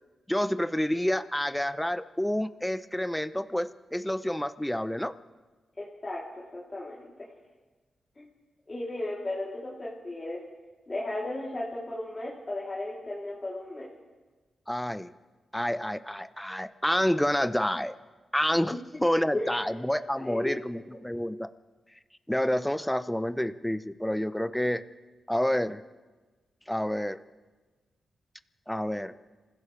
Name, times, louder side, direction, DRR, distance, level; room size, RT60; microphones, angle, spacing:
voice 1, 0.3-5.1 14.7-15.1 15.5-17.9 18.3-21.5 22.3-24.8 25.3-25.8 26.7-27.2 28.7-29.1, equal, 5° left, 13 dB, 0.7 m, -28 dB
voice 2, 5.8-6.2 6.5-7.3 8.1-8.3 8.7-10.4 10.9-13.9 19.3-19.6 20.1-20.8, left 2 dB, 30° left, -7 dB, 3.3 m, -35 dB
27.5 x 15.5 x 3.4 m, 1.3 s
cardioid pair, 65°, 0 cm